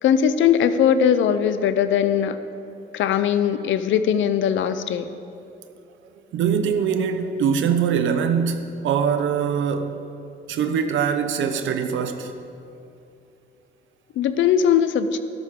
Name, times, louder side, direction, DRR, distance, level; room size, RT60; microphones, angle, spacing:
voice 1, 0.0-2.4 2.9-5.1 14.2-15.2, left 8 dB, 75° left, 0.7 m, -20 dB
voice 2, 6.3-10.0 10.5-12.3, right 7 dB, 75° right, 0.9 m, -23 dB
12.5 x 12.0 x 3.8 m
cardioid pair, 90°, 20 cm